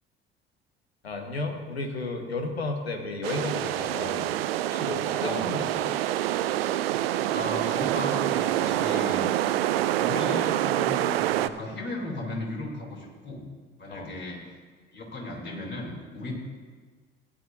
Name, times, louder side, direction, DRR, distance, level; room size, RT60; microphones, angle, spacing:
voice 1, 1.0-4.3 4.7-6.0 13.9-14.1, left 2 dB, 85° left, 4 dB, 1.2 m, -33 dB
sound 1, 3.2-11.5, right 13 dB, 70° right, 0.5 m, -26 dB
voice 2, 5.2-5.6 7.3-9.2 10.0-13.4 13.8-14.4 14.9-16.3, left 1 dB, 35° left, -1 dB, 3.3 m, -35 dB
16.0 x 10.5 x 2.7 m, 1.5 s
figure-of-eight pair, 55°, 30 cm